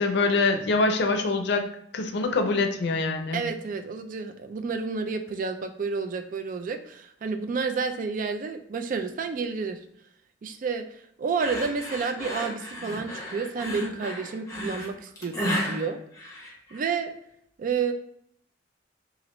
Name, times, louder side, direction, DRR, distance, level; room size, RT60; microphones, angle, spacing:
voice 1, 0.0-1.6 1.9-3.4, left 3 dB, 70° left, 6 dB, 0.5 m, -24 dB
voice 2, 3.3-9.8 10.4-16.0 16.7-17.1 17.6-17.9, right 5 dB, 50° right, 7 dB, 0.3 m, -30 dB
sound 1, 11.4-16.9, equal, 20° left, 0.8 m, -33 dB
3.0 x 2.5 x 3.0 m, 0.72 s
head